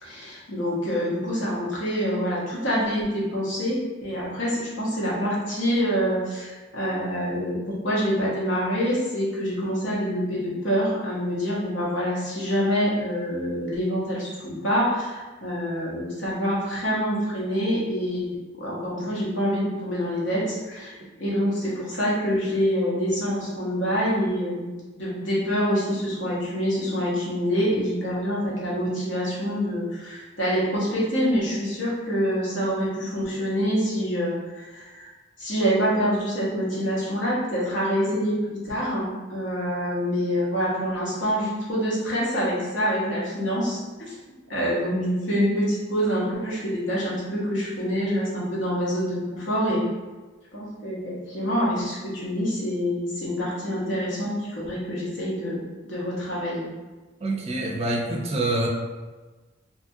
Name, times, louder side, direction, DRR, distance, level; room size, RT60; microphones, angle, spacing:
voice 1, 0.0-7.6 7.8-20.9 21.2-24.7 25.0-35.1 35.4-44.2 44.5-49.8 50.5-55.6 55.9-56.7, equal, 70° left, -6 dB, 1.0 m, -26 dB
voice 2, 57.2-58.7, right 2 dB, 35° right, -1 dB, 0.4 m, -26 dB
2.8 x 2.3 x 2.7 m, 1.3 s
head